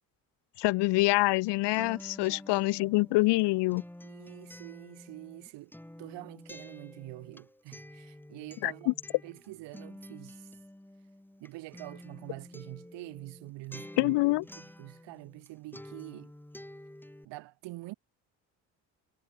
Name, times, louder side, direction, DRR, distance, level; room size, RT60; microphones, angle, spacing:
voice 1, 0.6-3.8 8.6-8.9 14.0-14.4, left 21 dB, 75° left, 1.0 m, -26 dB
Acoustic guitar, 1.3-15.5 15.7-17.2, left 1 dB, 5° left, 5.5 m, -49 dB
voice 2, 2.2-3.0 4.0-5.7 6.0-9.0 9.2-10.5 11.4-14.2 14.6-16.3 17.2-17.9, right 20 dB, 80° right, 7.4 m, -46 dB
supercardioid pair, 90°, 42 cm